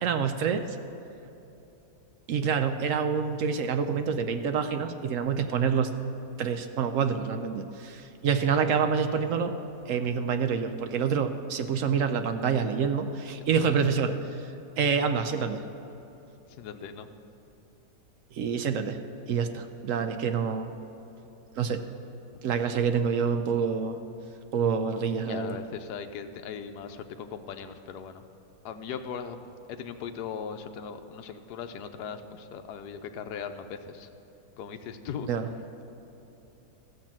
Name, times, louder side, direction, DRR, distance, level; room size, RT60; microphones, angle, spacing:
voice 1, 0.0-0.7 2.3-5.9 6.4-9.5 9.9-14.2 14.8-15.6 18.3-19.0 19.3-20.7 21.6-21.8 22.4-24.0 24.5-25.6 35.3-35.5, right 6 dB, 65° right, 8 dB, 0.8 m, -27 dB
voice 2, 16.6-17.1 25.3-28.2 28.6-34.1 34.6-35.3, left 7 dB, 80° left, 7 dB, 1.2 m, -39 dB
14.0 x 5.9 x 7.4 m, 2.9 s
omnidirectional pair, 1.7 m